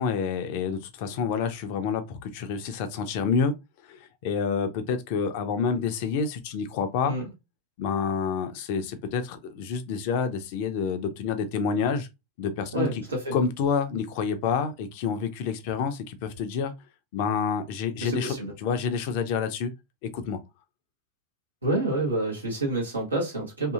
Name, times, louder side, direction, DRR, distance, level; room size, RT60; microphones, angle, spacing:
voice 1, 0.0-3.5 3.9-7.1 7.8-12.1 12.4-13.0 13.3-16.7 17.1-19.7 20.1-20.4, left 6 dB, 45° left, 0.5 m, -28 dB
voice 2, 12.7-13.4 18.0-18.5 21.6-23.7, right 2 dB, 80° right, 0.9 m, -28 dB
2.7 x 2.7 x 2.4 m
figure-of-eight pair, 90°, 0 cm